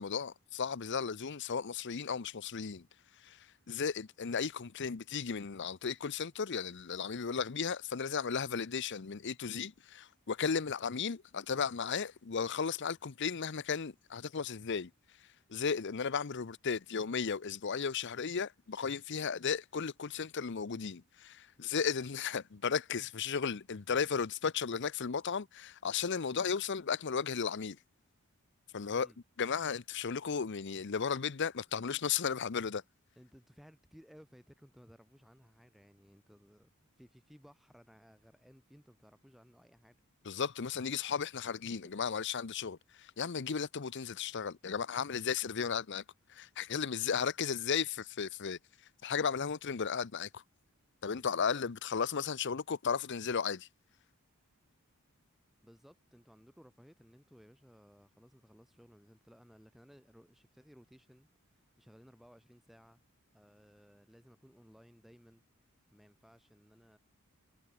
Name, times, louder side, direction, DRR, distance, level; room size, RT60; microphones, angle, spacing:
voice 1, 0.0-2.9 3.2-3.4 3.7-14.9 15.5-27.8 28.7-29.1 29.4-32.8 40.3-46.0 46.3-48.6 49.0-50.4 51.0-53.7, left 6 dB, 55° left, 0.7 m, -35 dB
voice 2, 33.2-36.7 37.0-40.0 41.8-41.9 51.1-51.5 55.6-63.0 63.3-65.4 65.9-67.0, equal, ahead, 2.6 m, -60 dB
head